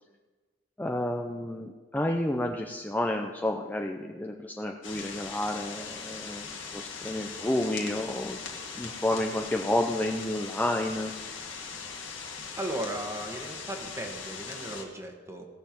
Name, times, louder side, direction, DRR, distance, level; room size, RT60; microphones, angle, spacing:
voice 1, 0.8-6.5 6.7-8.4 8.8-11.1, left 1 dB, 10° left, 2 dB, 0.5 m, -30 dB
sound 1, 4.8-14.8, left 5 dB, 80° left, 1.9 m, -40 dB
voice 2, 12.6-15.5, right 1 dB, 15° right, 3 dB, 1.4 m, -36 dB
17.5 x 6.8 x 5.2 m, 1.4 s
head